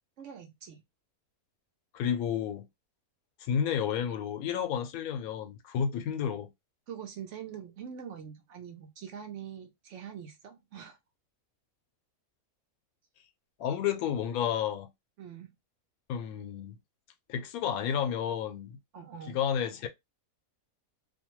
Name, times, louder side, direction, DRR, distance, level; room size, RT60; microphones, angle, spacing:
voice 1, 0.2-0.8 6.9-11.0 15.2-15.5 18.9-19.4, right 8 dB, 65° right, 0.8 m, -44 dB
voice 2, 1.9-2.6 3.4-6.5 13.6-14.9 16.1-16.8 17.3-18.8 19.3-19.9, left 8 dB, 85° left, 1.0 m, -31 dB
2.5 x 2.2 x 2.9 m
omnidirectional pair, 1.5 m